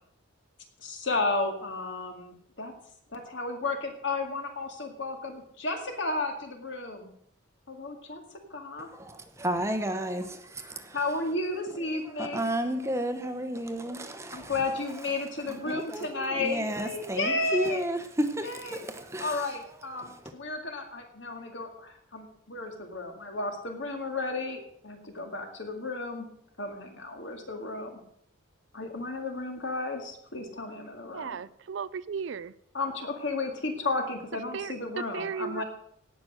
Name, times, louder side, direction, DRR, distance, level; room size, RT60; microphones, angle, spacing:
voice 1, 0.8-2.7 3.1-7.1 7.7-8.9 10.9-12.5 14.3-17.8 18.4-18.8 19.2-26.3 26.6-28.0 28.7-31.4 32.7-35.6, left 3 dB, 60° left, 2.1 m, -33 dB
voice 2, 8.8-11.1 12.2-14.6 15.5-19.6 20.0-20.2, right 1 dB, 15° right, 0.9 m, -32 dB
voice 3, 31.1-32.5 34.5-35.6, right 6 dB, 60° right, 0.4 m, -36 dB
17.5 x 6.1 x 6.5 m
head